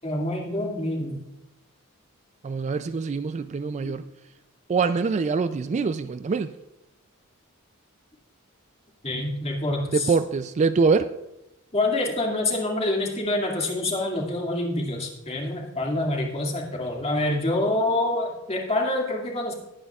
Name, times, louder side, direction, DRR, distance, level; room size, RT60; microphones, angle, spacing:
voice 1, 0.0-1.2 3.8-3.9 9.0-10.1 11.7-19.5, left 2 dB, 30° left, 2.2 m, -26 dB
voice 2, 2.4-4.0 4.7-6.5 9.9-11.1, right 4 dB, 30° right, 0.3 m, -24 dB
19.5 x 9.4 x 2.4 m
head